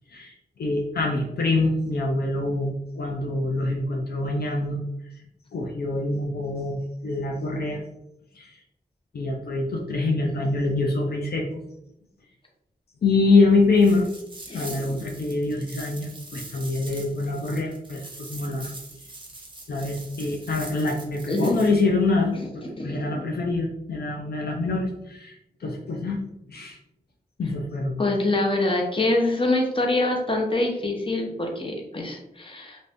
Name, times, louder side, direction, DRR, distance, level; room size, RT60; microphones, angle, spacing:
voice 1, 0.1-4.8 5.5-7.8 8.3-8.6 9.1-11.6 13.0-14.1 14.5-18.7 19.7-26.2 26.5-26.8 27.4-28.1, left 3 dB, 75° left, 0 dB, 0.5 m, -25 dB
sound 1, 13.7-21.8, right 2 dB, 30° right, 0.7 m, -43 dB
voice 2, 14.5-15.0 18.5-18.6 21.3-21.5 22.8-23.3 28.0-32.8, left 2 dB, 30° left, 1 dB, 0.9 m, -25 dB
2.6 x 2.5 x 3.4 m, 0.82 s
cardioid pair, 45°, 16 cm